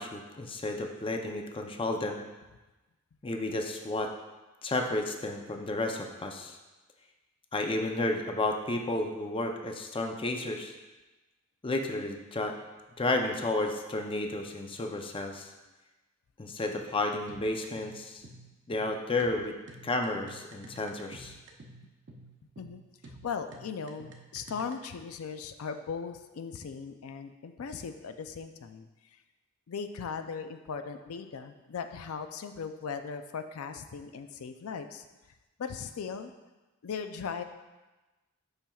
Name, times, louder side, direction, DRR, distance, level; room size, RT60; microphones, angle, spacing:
voice 1, 0.0-2.2 3.2-4.1 4.6-6.6 7.5-10.7 11.6-12.5 13.0-15.5 16.4-18.2 18.7-19.6 19.8-21.4, left 2 dB, 25° left, 4 dB, 0.5 m, -32 dB
sound 1, 17.3-24.9, right 2 dB, 60° right, 0.8 m, -50 dB
voice 2, 22.6-28.9 29.7-35.0 35.6-36.3 36.8-37.4, left 6 dB, 85° left, 8 dB, 0.4 m, -38 dB
8.7 x 5.7 x 2.3 m, 1.1 s
head